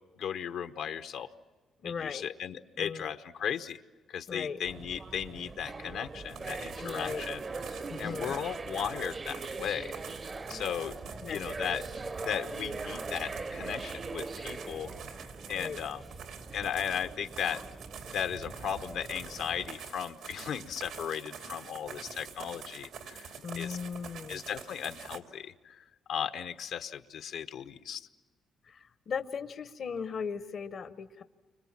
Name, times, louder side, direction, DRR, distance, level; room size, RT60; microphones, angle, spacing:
voice 1, 0.2-1.3 1.8-3.8 4.1-7.4 7.7-9.9 10.5-11.0 11.3-11.8 12.2-14.9 15.5-16.0 16.5-17.6 18.1-23.8 24.3-28.1, left 8 dB, 80° left, 9 dB, 1.0 m, -36 dB
voice 2, 1.8-2.2 2.8-3.1 4.3-4.6 6.8-7.2 7.9-8.3 11.2-11.5 15.5-15.8 23.4-24.4 28.6-31.2, left 6 dB, 55° left, 11 dB, 0.9 m, -37 dB
sound 1, 4.7-19.7, right 3 dB, 30° right, 0.7 m, -41 dB
sound 2, 6.3-25.2, right 6 dB, 85° right, 2.7 m, -46 dB
30.0 x 25.5 x 7.4 m, 1.3 s
cardioid pair, 90°, 0 cm